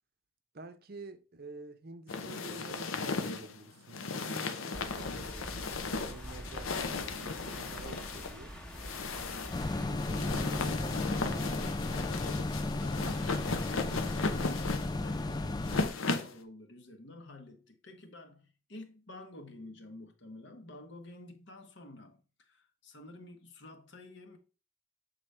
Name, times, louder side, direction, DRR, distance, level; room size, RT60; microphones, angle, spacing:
voice 1, 0.5-8.6 9.8-11.8, right 3 dB, 50° right, 0.6 m, -48 dB
sound 1, 2.1-16.4, left 4 dB, 85° left, 0.7 m, -36 dB
sound 2, 4.7-9.9, equal, 5° left, 1.0 m, -45 dB
sound 3, 9.5-15.9, left 2 dB, 20° left, 0.3 m, -34 dB
voice 2, 12.8-24.4, left 2 dB, 60° left, 1.1 m, -50 dB
7.6 x 4.0 x 3.3 m
head